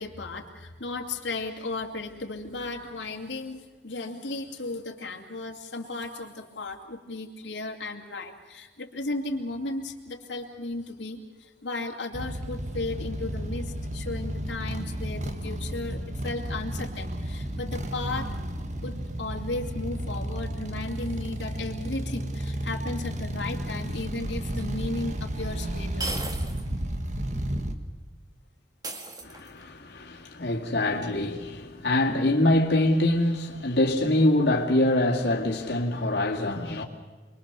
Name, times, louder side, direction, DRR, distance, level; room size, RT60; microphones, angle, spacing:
voice 1, 0.0-18.3 18.8-26.1, left 2 dB, 90° left, 2.7 m, -35 dB
sound 1, 12.1-27.8, right 1 dB, 40° right, 1.6 m, -33 dB
sound 2, 24.6-24.7 26.0-26.7 27.1-27.2 28.8-29.7, right 2 dB, 20° right, 1.9 m, -36 dB
voice 2, 29.2-36.8, left 1 dB, 65° left, 2.4 m, -24 dB
28.0 x 22.0 x 6.9 m
head